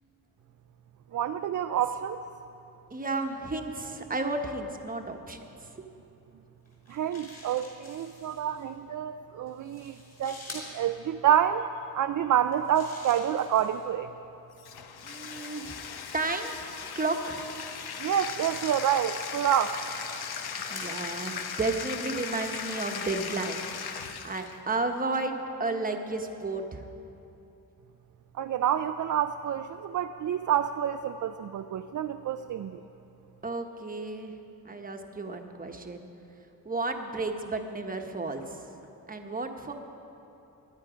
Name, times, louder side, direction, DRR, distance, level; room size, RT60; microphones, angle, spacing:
voice 1, 1.1-2.2 6.9-11.7 11.9-14.1 18.0-19.8 28.3-32.8, right 10 dB, 55° right, 8 dB, 0.4 m, -28 dB
voice 2, 2.9-5.8 15.0-15.8 16.1-17.4 20.7-23.9 24.2-26.8 33.4-34.3 34.6-36.1 36.6-38.7 39.1-39.7, right 3 dB, 20° right, 4 dB, 1.1 m, -33 dB
sound 1, 6.6-8.6 9.5-10.7 12.3-13.9 14.8-16.9 17.8-18.1 18.9-20.9, left 2 dB, 45° left, 4.4 m, -49 dB
Bathtub (filling or washing), 14.6-24.6, left 6 dB, 80° left, 1.0 m, -37 dB
22.5 x 10.5 x 5.1 m, 2.9 s
wide cardioid pair, 125°, 37 cm